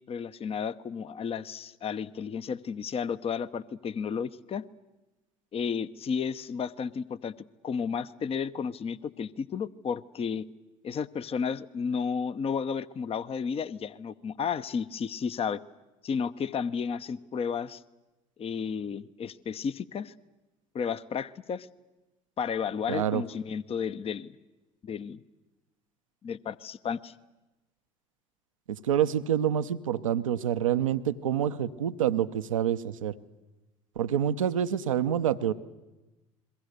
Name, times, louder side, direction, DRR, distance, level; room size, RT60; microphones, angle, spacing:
voice 1, 0.0-4.7 5.5-7.3 7.6-10.5 10.8-15.6 16.0-17.8 18.4-20.1 20.7-21.7 22.4-24.4 24.8-25.2 26.2-27.1, left 6 dB, 35° left, 14 dB, 0.8 m, -32 dB
voice 2, 22.9-23.2 28.7-33.1 34.0-35.5, right 10 dB, 90° right, 11 dB, 0.7 m, -27 dB
29.0 x 22.0 x 6.7 m, 1.1 s
hypercardioid pair, 65°, 16 cm